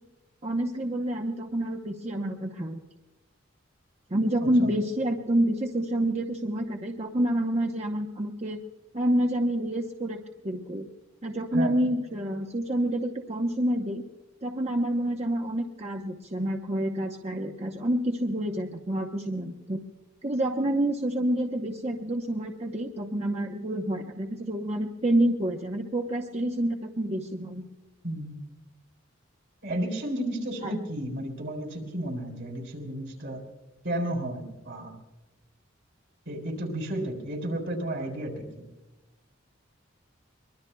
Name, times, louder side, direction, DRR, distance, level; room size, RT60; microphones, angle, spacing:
voice 1, 0.4-2.8 4.1-8.6 8.9-10.9 11.2-14.0 14.4-19.8 20.2-27.6 30.6-30.7, right 1 dB, 35° right, 1 dB, 0.9 m, -28 dB
voice 2, 29.6-33.4 33.8-35.0 36.3-38.6, right 1 dB, 70° right, 0 dB, 4.1 m, -32 dB
23.5 x 22.0 x 2.3 m, 1.1 s
head